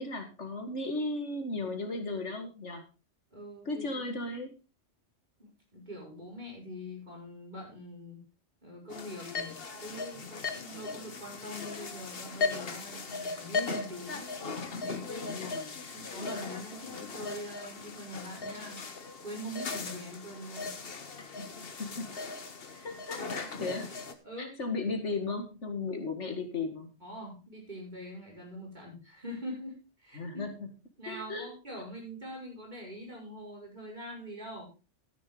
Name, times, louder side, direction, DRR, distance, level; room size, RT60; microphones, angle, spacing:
voice 1, 0.0-2.8 3.7-4.5 15.2-15.8 21.8-22.1 22.8-24.0 24.4-26.9 30.2-30.7 31.1-31.5, left 3 dB, 65° left, 5 dB, 2.2 m, -35 dB
voice 2, 3.3-4.0 5.4-8.2 8.6-9.6 9.8-14.3 14.7-15.4 15.9-18.8 19.2-20.7 21.4-21.6 22.7-22.9 24.2-24.5 27.0-30.5 31.0-34.7, equal, 35° right, -2 dB, 5.9 m, -43 dB
sound 1, 8.9-24.1, left 4 dB, 50° left, 1.4 m, -38 dB
13.5 x 9.9 x 3.9 m, 0.31 s
omnidirectional pair, 1.3 m